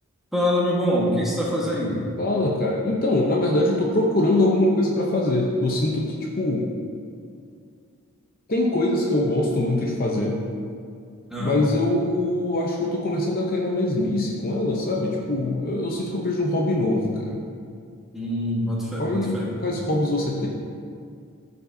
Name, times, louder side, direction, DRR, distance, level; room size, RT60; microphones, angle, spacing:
voice 1, 0.3-2.1 11.3-11.6 18.1-19.5, equal, ahead, -6 dB, 1.4 m, -24 dB
voice 2, 2.2-6.7 8.5-10.4 11.4-17.4 19.0-20.5, left 1 dB, 40° left, -2 dB, 0.7 m, -23 dB
14.0 x 5.3 x 2.7 m, 2.3 s
head